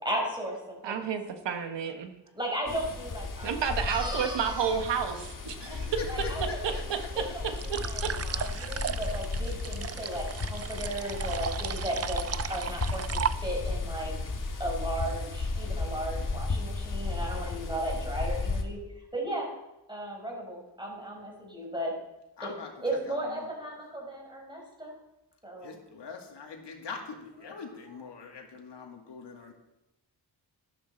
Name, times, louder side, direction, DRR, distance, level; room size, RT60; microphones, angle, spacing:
voice 1, 0.0-1.1 2.3-4.8 5.6-5.8 6.1-6.8 7.1-14.1 14.5-18.8 19.1-19.5 19.9-21.9 22.4-22.5 22.8-24.9 25.4-25.7, right 1 dB, 10° right, -1 dB, 5.0 m, -36 dB
voice 2, 0.8-2.2 3.4-5.9 6.6-8.1, right 7 dB, 85° right, 6 dB, 1.3 m, -31 dB
sound 1, 2.7-18.6, left 3 dB, 50° left, 1.7 m, -34 dB
voice 3, 5.6-7.1 17.3-17.5 22.4-22.7 23.1-23.5 25.6-29.5, left 5 dB, 75° left, 2 dB, 2.2 m, -42 dB
sound 2, 7.6-13.8, right 8 dB, 35° right, 0.5 m, -35 dB
12.5 x 11.5 x 4.3 m, 0.94 s
cardioid pair, 85°, 42 cm